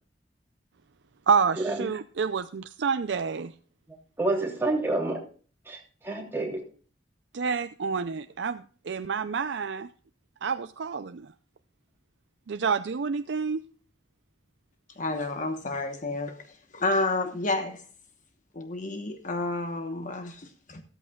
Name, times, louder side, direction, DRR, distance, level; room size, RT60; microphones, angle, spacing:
voice 1, 1.3-3.5 7.3-9.9 10.4-11.3 12.5-13.6, right 5 dB, 75° right, 0.5 m, -28 dB
voice 2, 3.9-5.2 5.7-6.6, right 2 dB, 15° right, 2.9 m, -29 dB
voice 3, 15.0-16.5 16.7-17.8 18.5-20.8, left 2 dB, 45° left, 1.1 m, -30 dB
14.0 x 13.5 x 2.3 m
head